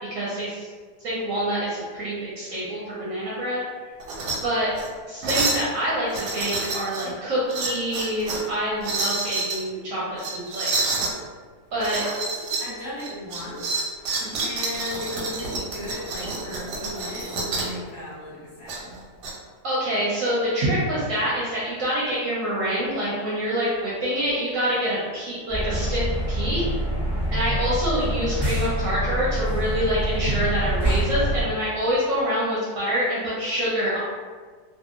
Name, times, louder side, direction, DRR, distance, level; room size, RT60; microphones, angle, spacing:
voice 1, 0.1-0.7 1.0-3.6 4.4-4.7 5.1-10.8 11.7-12.0 14.2-14.4 19.6-26.6 27.3-34.0, equal, 65° right, -7 dB, 0.8 m, -26 dB
sound 1, 4.0-4.4 4.7-4.9 5.2-5.7 6.1-7.1 7.5-8.5 8.8-9.6 10.2-11.1 11.8-12.7 13.0-17.8 18.7-19.3, right 3 dB, 90° right, 1.2 m, -28 dB
voice 2, 11.8-19.0, left 1 dB, 50° left, -10 dB, 0.9 m, -36 dB
sound 2, 25.5-31.4, right 1 dB, 10° left, 0.4 m, -26 dB
2.7 x 2.3 x 2.4 m, 1.5 s
omnidirectional pair, 1.8 m